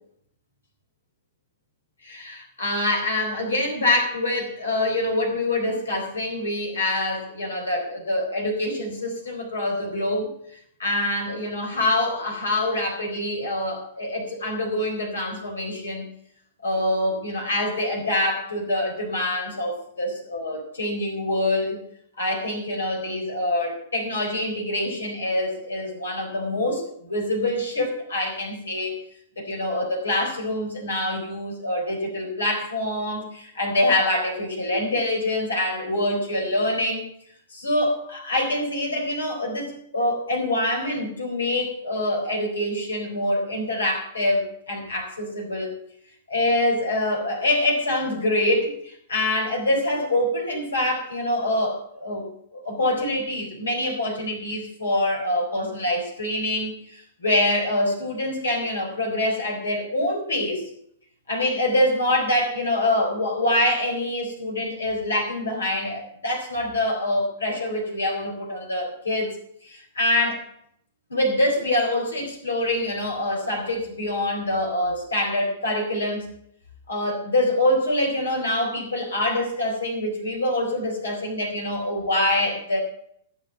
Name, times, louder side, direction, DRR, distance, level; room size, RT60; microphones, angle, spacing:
voice 1, 2.0-10.3 10.8-16.1 16.6-21.8 22.2-29.0 29.4-37.0 37.5-45.7 46.3-60.6 61.3-69.4 69.6-70.4 71.1-76.3 76.9-82.8, left 1 dB, 75° left, 2 dB, 4.1 m, -25 dB
15.5 x 7.3 x 7.1 m, 0.70 s
figure-of-eight pair, 105°, 0 cm